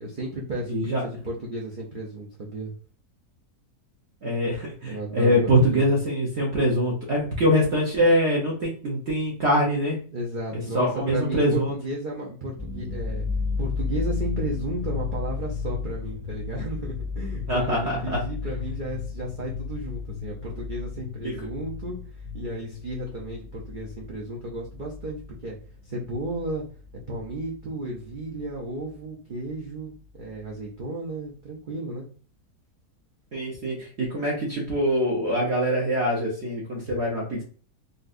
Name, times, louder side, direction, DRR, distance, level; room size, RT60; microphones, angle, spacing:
voice 1, 0.0-2.7 4.9-5.9 10.1-13.3 13.6-22.0 22.3-25.6 25.8-26.6 27.1-32.1, right 1 dB, 80° right, -3 dB, 0.4 m, -33 dB
voice 2, 0.7-1.0 4.2-10.0 10.7-11.7 17.5-18.2 21.2-21.4 33.3-37.4, equal, 50° right, -3 dB, 0.9 m, -24 dB
sound 1, 12.6-27.7 27.9-29.0 29.4-29.5 29.8-30.5, left 5 dB, 5° right, 0.9 m, -34 dB
4.1 x 2.2 x 2.4 m, 0.40 s
omnidirectional pair, 1.7 m